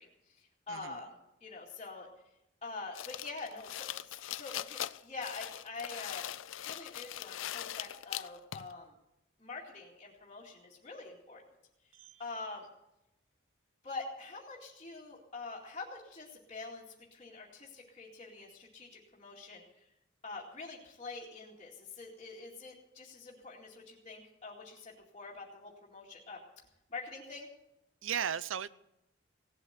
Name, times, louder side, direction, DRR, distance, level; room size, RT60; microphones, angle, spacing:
voice 1, 0.0-2.1 2.6-6.3 6.6-8.9 9.4-11.4 12.2-12.7 13.8-19.8 20.2-26.4 26.9-27.5, left 3 dB, 30° left, -7 dB, 2.3 m, -45 dB
voice 2, 0.7-1.0 11.9-12.2 28.0-28.7, right 8 dB, 80° right, 17 dB, 0.6 m, -36 dB
sound 1, 2.9-8.7, left 12 dB, 75° left, 0.4 m, -41 dB
17.5 x 8.2 x 8.1 m, 0.87 s
head